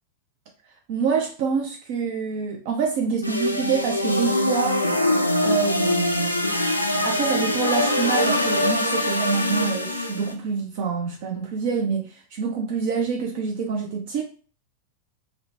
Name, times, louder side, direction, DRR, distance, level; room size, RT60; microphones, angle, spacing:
voice 1, 0.9-4.8 5.4-6.3 7.0-14.2, right 5 dB, 50° right, 1 dB, 0.5 m, -26 dB
sound 1, 3.2-10.3, left 1 dB, 90° left, 0.4 m, -23 dB
2.6 x 2.1 x 2.9 m, 0.39 s
figure-of-eight pair, 90°, 0 cm